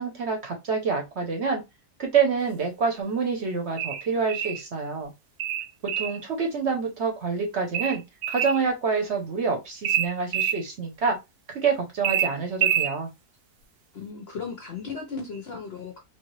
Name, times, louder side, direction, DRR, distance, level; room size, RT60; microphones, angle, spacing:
voice 1, 0.0-1.6 2.0-5.1 5.8-8.0 8.3-11.2 11.5-13.1, right 5 dB, 55° right, 0.9 m, -27 dB
sound 1, 3.8-4.6 5.4-6.2 7.7-8.6 9.8-10.6 12.0-12.9, right 10 dB, 85° right, 1.1 m, -26 dB
voice 2, 13.9-16.0, left 5 dB, 60° left, 0.6 m, -36 dB
3.1 x 2.4 x 3.0 m
omnidirectional pair, 1.6 m